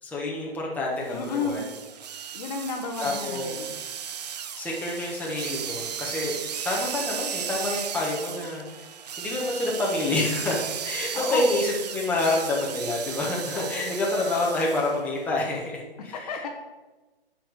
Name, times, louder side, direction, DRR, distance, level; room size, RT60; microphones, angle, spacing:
voice 1, 0.0-1.6 3.0-3.5 4.6-6.3 6.6-8.9 9.2-16.3, left 2 dB, 5° left, -4 dB, 1.3 m, -28 dB
voice 2, 1.1-1.6 2.3-3.8 11.1-11.5 13.5-14.0 16.1-16.5, left 5 dB, 40° left, 3 dB, 1.2 m, -32 dB
sound 1, 1.1-15.0, right 8 dB, 45° right, 0.6 m, -35 dB
10.5 x 4.7 x 6.6 m, 1.2 s
figure-of-eight pair, 125°, 30 cm